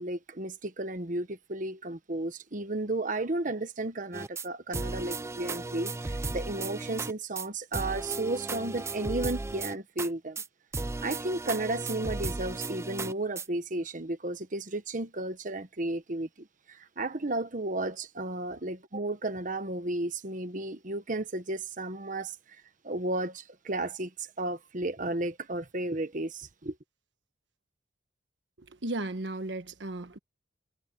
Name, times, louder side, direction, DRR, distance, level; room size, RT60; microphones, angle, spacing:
voice 1, 0.0-10.4 11.0-22.3 22.8-26.7, right 2 dB, 45° right, 1.2 m, -33 dB
sound 1, 4.1-4.5 4.7-7.1 7.4-7.5 7.7-10.1 10.4-10.5 10.7-13.5, right 3 dB, 15° right, 0.4 m, -35 dB
voice 2, 28.8-30.2, right 2 dB, 85° right, 1.2 m, -35 dB
head